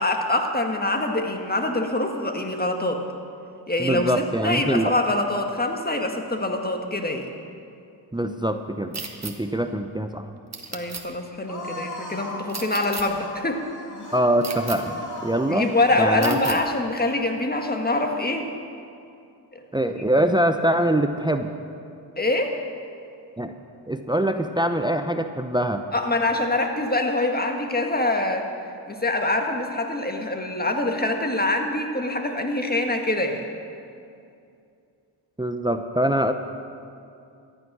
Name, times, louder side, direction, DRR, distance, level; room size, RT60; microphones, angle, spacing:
voice 1, 0.0-3.0 3.7-4.1 4.4-7.3 10.7-13.6 14.9-15.0 15.5-18.5 19.5-19.6 22.2-22.6 25.9-28.5 28.9-33.4, left 2 dB, 20° left, 4 dB, 1.7 m, -24 dB
voice 2, 3.8-4.9 8.1-10.3 14.1-15.0 15.2-15.7 16.0-16.6 19.7-21.5 23.4-23.5 23.9-25.8 35.4-36.3, right 1 dB, 10° right, 8 dB, 0.7 m, -23 dB
sound 1, 8.9-9.3 10.5-11.0 12.5-13.0 14.4-14.8 16.2-16.6, right 4 dB, 35° right, 1.5 m, -33 dB
sound 2, 11.5-16.4, left 1 dB, 40° left, 2.4 m, -37 dB
14.0 x 9.0 x 6.1 m, 2.5 s
supercardioid pair, 45°, 47 cm